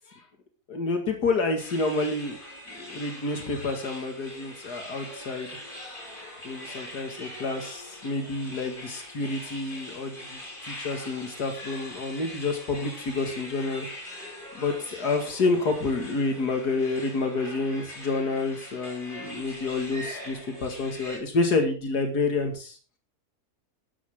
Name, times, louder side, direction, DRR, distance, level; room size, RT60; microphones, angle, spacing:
voice 1, 0.7-2.4 2.7-5.5 6.4-13.9 14.5-22.8, left 3 dB, 85° left, 5 dB, 2.5 m, -29 dB
sound 1, 1.6-21.2, left 1 dB, 30° left, 4.1 m, -42 dB
12.5 x 12.5 x 3.7 m, 0.37 s
omnidirectional pair, 1.7 m